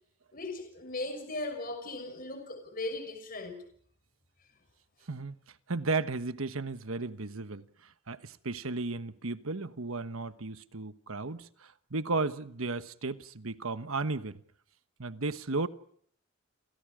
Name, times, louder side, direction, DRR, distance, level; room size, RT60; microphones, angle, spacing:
voice 1, 0.3-3.6, left 2 dB, 45° left, 6.3 m, -38 dB
voice 2, 5.7-14.4 15.0-15.7, right 3 dB, 75° right, 1.2 m, -34 dB
29.5 x 27.5 x 5.0 m
head